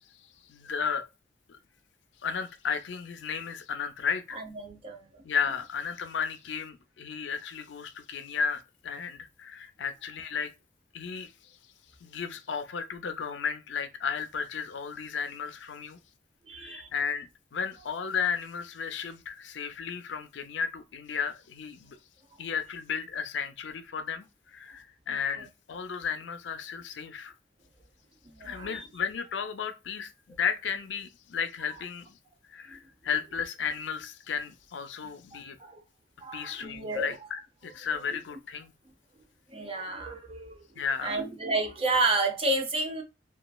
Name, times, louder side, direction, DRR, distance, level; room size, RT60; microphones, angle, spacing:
voice 1, 0.5-1.1 1.5-1.6 2.2-4.4 5.2-10.5 10.9-11.6 12.0-16.0 16.6-22.0 22.4-24.3 24.5-27.3 28.4-32.1 32.5-35.6 36.3-38.7 40.8-41.2, left 6 dB, 85° left, 0.5 m, -34 dB
voice 2, 4.3-5.2 16.5-16.9 25.1-25.5 28.2-28.9 32.7-32.8 35.3-35.8 36.2-37.1 39.5-43.0, right 2 dB, 35° right, 0.6 m, -31 dB
3.0 x 2.3 x 2.2 m
head